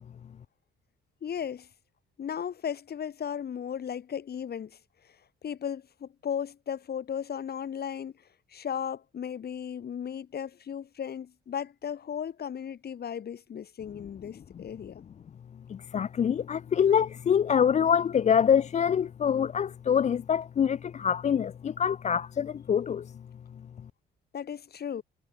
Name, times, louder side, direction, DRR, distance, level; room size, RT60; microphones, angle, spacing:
voice 1, 1.2-1.7 2.2-4.8 5.4-8.1 8.5-15.0 24.3-25.0, left 8 dB, 55° left, 2.5 m, -35 dB
voice 2, 15.7-23.1, left 8 dB, 35° left, 0.4 m, -25 dB
cardioid pair, 90°, 20 cm